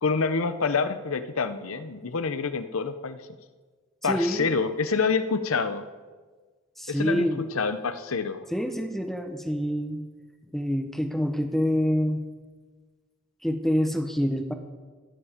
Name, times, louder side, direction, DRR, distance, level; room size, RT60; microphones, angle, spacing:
voice 1, 0.0-3.2 4.0-5.9 6.9-8.5, left 4 dB, 90° left, 11 dB, 0.8 m, -27 dB
voice 2, 4.0-4.5 6.8-7.4 8.5-10.0 10.5-12.2 13.4-14.5, equal, ahead, 6 dB, 1.0 m, -26 dB
14.5 x 9.9 x 5.1 m, 1.4 s
head